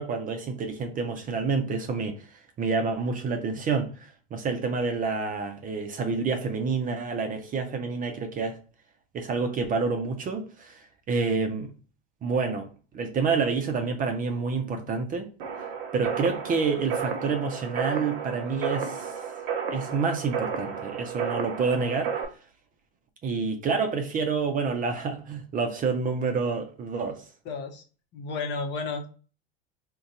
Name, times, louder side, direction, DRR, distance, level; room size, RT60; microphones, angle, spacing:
voice 1, 0.0-2.3 2.6-8.6 9.1-11.7 12.2-15.3 15.9-19.2 19.7-22.2 23.2-27.2, right 4 dB, 30° right, 0.5 m, -28 dB
sound 1, 15.4-22.2, right 6 dB, 65° right, 0.7 m, -32 dB
voice 2, 27.4-27.8 28.1-29.1, left 4 dB, 40° left, 0.8 m, -32 dB
2.6 x 2.2 x 3.7 m
hypercardioid pair, 95°, 29 cm